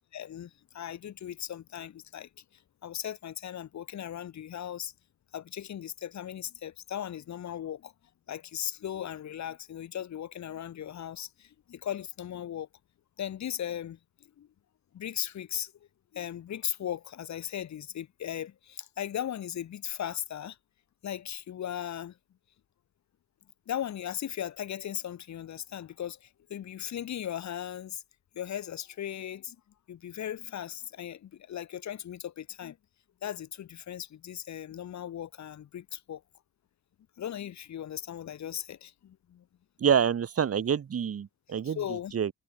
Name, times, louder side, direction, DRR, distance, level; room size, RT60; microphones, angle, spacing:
voice 1, 0.1-2.3 2.8-4.9 5.3-7.9 8.3-12.7 13.2-14.0 14.4-14.5 14.9-15.7 16.1-20.6 21.0-22.1 23.7-26.2 26.5-28.0 28.3-29.6 29.9-32.8 33.2-36.2 37.2-39.4 41.6-42.1, left 10 dB, 60° left, 3.1 m, -37 dB
voice 2, 39.8-41.8 42.1-42.3, right 8 dB, 45° right, 3.2 m, -26 dB
cardioid pair, 95°, 32 cm